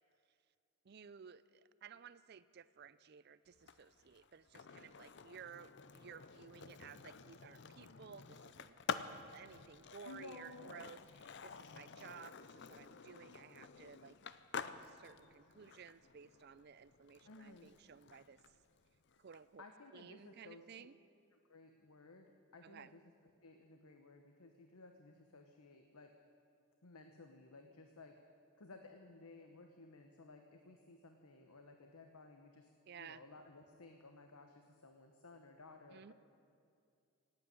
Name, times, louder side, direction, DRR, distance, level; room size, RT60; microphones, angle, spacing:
voice 1, 0.8-8.8 9.3-14.2 14.6-18.4 19.2-19.6 19.9-21.0 22.6-22.9 32.9-33.2 35.9-36.1, right 7 dB, 45° right, 16 dB, 0.4 m, -56 dB
Skateboard, 3.5-19.4, left 6 dB, 50° left, 0.5 m, -50 dB
voice 2, 10.0-10.8 17.2-17.7 19.6-20.9 21.3-26.1 26.8-28.2 28.6-36.1, left 3 dB, 85° left, 5 dB, 1.0 m, -57 dB
17.5 x 8.9 x 9.3 m, 2.4 s
head